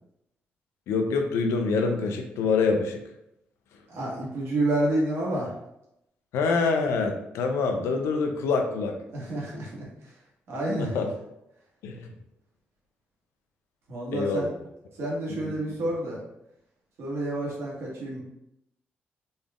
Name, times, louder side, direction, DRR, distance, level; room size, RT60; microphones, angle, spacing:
voice 1, 0.9-3.0 6.3-8.9 10.8-11.0 11.8-12.1 14.1-14.5 15.4-15.5, left 4 dB, 90° left, 4 dB, 0.5 m, -25 dB
voice 2, 3.9-5.5 9.1-10.1 10.5-11.0 13.9-14.5 15.0-16.2 17.0-18.2, right 1 dB, 75° right, -4 dB, 1.4 m, -29 dB
3.9 x 3.4 x 2.4 m, 0.83 s
cardioid pair, 70°, 4 cm